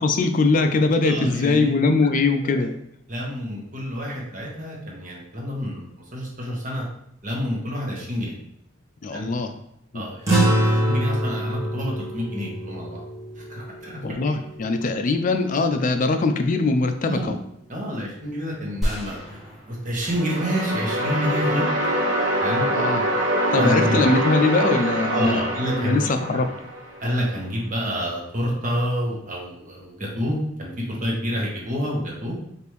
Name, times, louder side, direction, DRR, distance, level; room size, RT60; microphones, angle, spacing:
voice 1, 0.0-2.7 9.0-9.5 9.9-10.1 14.0-17.4 22.7-23.1 23.5-25.4 25.8-26.5, left 3 dB, 40° left, 7 dB, 0.4 m, -21 dB
voice 2, 1.0-1.8 2.4-2.7 3.1-5.8 6.1-6.9 7.2-8.3 9.1-9.3 9.9-13.0 13.4-14.0 17.1-17.3 17.7-21.7 22.4-22.6 23.6-24.0 25.1-26.4 27.0-32.3, equal, 40° right, -2 dB, 1.1 m, -28 dB
sound 1, 10.3-14.9, right 1 dB, 15° right, 0.9 m, -24 dB
sound 2, 18.8-20.7 21.1-21.2, equal, ahead, 1.3 m, -31 dB
sound 3, 20.0-27.0, equal, 80° right, 1.1 m, -24 dB
5.0 x 2.6 x 3.1 m, 0.75 s
head